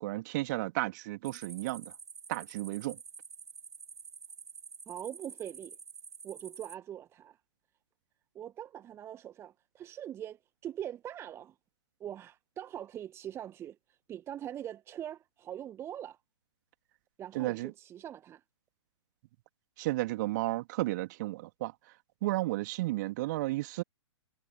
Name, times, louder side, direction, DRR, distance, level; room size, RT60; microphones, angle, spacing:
voice 1, 0.0-1.9 2.3-3.0 17.3-17.7 19.8-21.7 22.2-23.8, right 19 dB, 35° right, 2.6 m, -33 dB
sound 1, 1.2-6.8, right 6 dB, 65° right, 6.1 m, -49 dB
voice 2, 4.9-5.8 6.2-7.4 8.3-11.5 12.0-16.2 17.2-18.4, right 10 dB, 15° right, 1.2 m, -42 dB
figure-of-eight pair, 115°, 16 cm